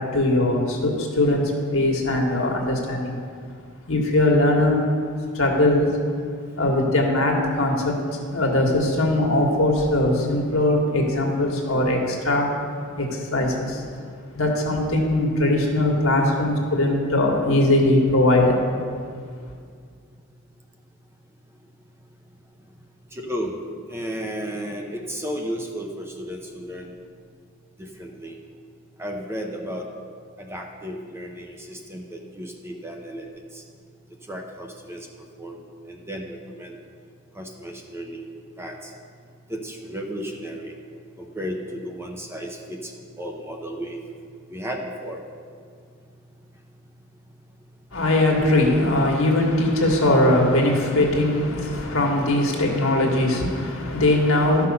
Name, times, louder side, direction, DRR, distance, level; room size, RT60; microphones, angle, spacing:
voice 1, 0.0-3.2 3.9-4.8 5.3-5.9 6.6-7.9 8.3-12.5 13.0-13.8 14.3-18.6 47.9-54.7, left 1 dB, 65° left, 0 dB, 1.6 m, -20 dB
voice 2, 23.1-23.5 23.9-26.9 27.8-28.3 29.0-29.8 30.4-33.3 33.5-33.6 34.3-35.1 35.4-35.6 35.9-36.8 37.4-38.3 38.6-38.9 39.5-40.7 41.2-42.9 43.2-44.0 44.5-45.2, equal, 10° right, 2 dB, 0.7 m, -33 dB
12.5 x 5.8 x 5.4 m, 2.1 s
head